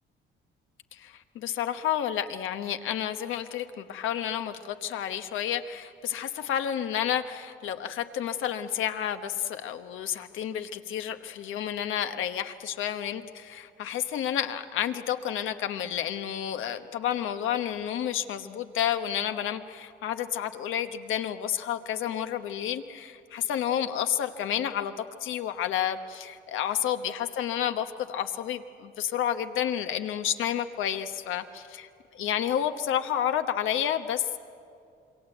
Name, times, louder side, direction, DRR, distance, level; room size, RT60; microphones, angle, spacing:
voice 1, 0.9-34.4, left 10 dB, 85° left, 8 dB, 1.2 m, -30 dB
27.0 x 23.0 x 7.9 m, 2.5 s
cardioid pair, 90°, 20 cm